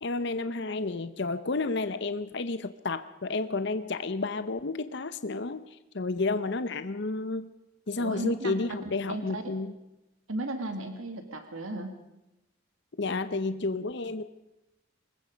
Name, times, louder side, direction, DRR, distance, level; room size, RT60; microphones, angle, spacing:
voice 1, 0.0-5.6 5.9-7.5 7.9-9.7 13.0-14.2, left 3 dB, 55° left, 11 dB, 0.8 m, -31 dB
voice 2, 8.0-8.6 9.1-9.4 10.3-12.0, right 1 dB, 85° right, 6 dB, 2.1 m, -35 dB
25.0 x 20.5 x 5.2 m, 0.92 s
head